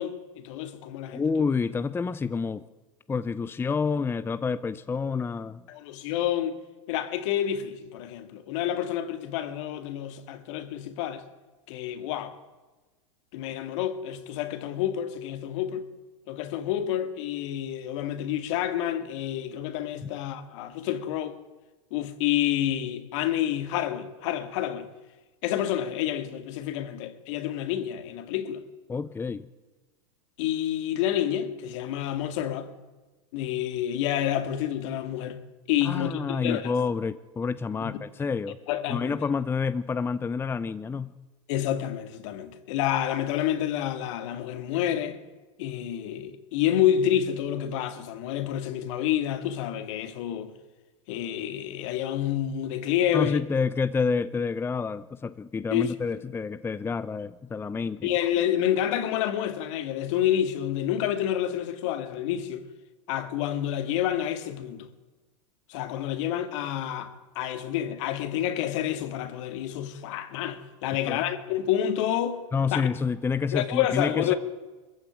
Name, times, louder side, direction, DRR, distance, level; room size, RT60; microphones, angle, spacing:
voice 1, 0.0-1.2 5.7-6.6 6.9-11.2 11.7-12.3 13.3-15.9 16.3-21.3 21.9-24.9 25.4-28.6 30.4-32.7 33.3-35.4 35.7-36.7 37.8-37.9 38.7-39.2 41.5-45.2 45.6-50.5 51.1-53.4 55.7-55.9 58.0-62.6 63.1-64.9 65.7-72.4 72.7-72.8 73.5-74.4, left 11 dB, 65° left, 2.3 m, -28 dB
voice 2, 1.1-2.6 3.1-5.6 20.0-20.1 28.9-29.5 35.8-38.6 38.9-41.1 53.1-58.1 71.1-71.2 72.5-74.3, left 5 dB, 15° left, 0.6 m, -28 dB
22.0 x 14.5 x 9.2 m
hypercardioid pair, 115°, 17 cm